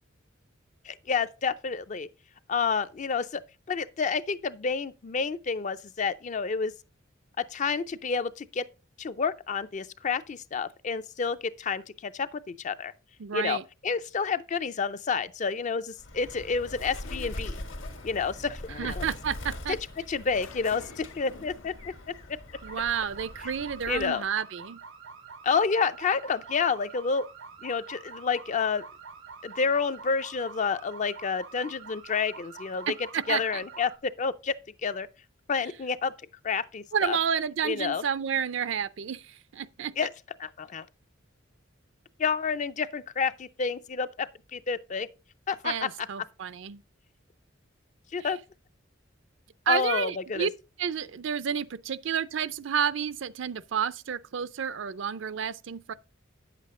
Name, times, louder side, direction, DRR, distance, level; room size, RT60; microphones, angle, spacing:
voice 1, 0.9-2.1 2.5-3.4 3.7-6.7 7.4-8.7 9.0-12.9 13.3-13.6 13.8-17.6 18.0-19.1 19.7-19.8 20.1-21.9 22.3-22.4 23.9-24.2 25.4-27.3 27.6-28.9 29.4-32.9 33.3-34.6 34.8-35.1 35.5-36.1 36.4-37.2 37.6-38.0 40.0-40.1 40.4-40.9 42.2-45.1 45.5-45.9 48.1-48.4 49.7-50.5, left 5 dB, 40° left, 0.4 m, -29 dB
voice 2, 13.2-13.6 18.8-19.8 22.6-24.8 32.9-33.6 36.9-39.9 45.6-46.8 49.7-50.5 50.8-55.9, right 7 dB, 65° right, 0.5 m, -30 dB
Bird, 16.0-24.3, left 1 dB, 70° left, 1.6 m, -42 dB
sound 1, 16.3-22.4, left 4 dB, 90° left, 0.9 m, -52 dB
sound 2, 22.5-34.0, right 5 dB, 90° right, 1.3 m, -46 dB
9.0 x 7.5 x 3.7 m
head